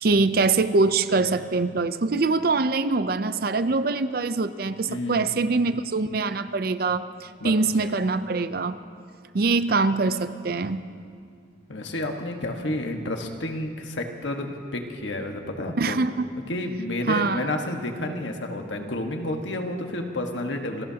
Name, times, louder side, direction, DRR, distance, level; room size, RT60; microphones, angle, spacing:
voice 1, 0.0-8.8 9.3-10.8 15.8-16.3 17.1-17.4, right 3 dB, 55° right, 12 dB, 0.5 m, -23 dB
voice 2, 4.9-5.6 7.4-7.5 7.8-7.9 11.7-16.0 16.5-20.8, left 1 dB, 80° left, 3 dB, 1.5 m, -30 dB
27.5 x 18.0 x 2.9 m, 2.2 s
head